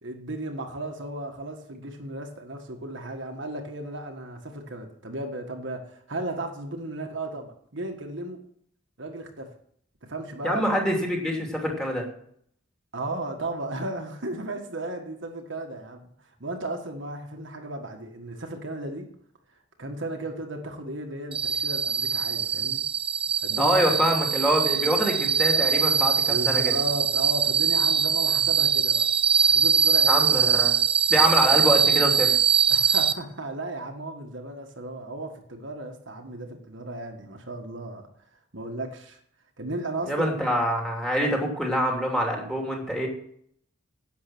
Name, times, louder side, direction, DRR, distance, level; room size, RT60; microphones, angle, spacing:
voice 1, 0.0-8.4 9.0-9.5 10.0-10.6 12.9-19.1 19.8-22.8 23.4-23.7 26.3-29.0 29.4-30.3 32.7-38.1 38.5-39.2 39.6-40.3, right 2 dB, 65° right, 3 dB, 1.6 m, -35 dB
voice 2, 10.4-12.0 23.6-26.7 30.1-30.7 31.1-32.3 40.1-43.1, equal, 5° left, 0 dB, 2.8 m, -25 dB
sound 1, 21.3-33.1, right 7 dB, 25° right, 0.6 m, -22 dB
11.0 x 7.7 x 6.1 m, 0.64 s
head